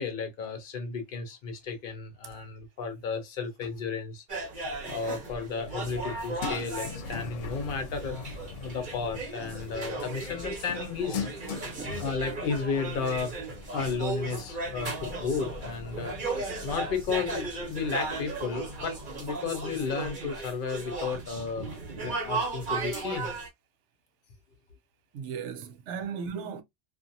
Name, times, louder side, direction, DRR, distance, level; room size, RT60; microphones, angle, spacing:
voice 1, 0.0-4.2 4.9-8.3 8.6-11.3 11.5-11.6 12.0-21.7 22.0-23.4, left 5 dB, 50° left, 0.8 m, -33 dB
sound 1, 4.3-23.5, right 3 dB, 45° right, 1.1 m, -36 dB
sound 2, 5.6-20.4, left 5 dB, 80° left, 0.9 m, -42 dB
voice 2, 11.7-12.0 25.1-26.6, right 6 dB, 75° right, 0.9 m, -37 dB
2.6 x 2.4 x 2.6 m
omnidirectional pair, 1.3 m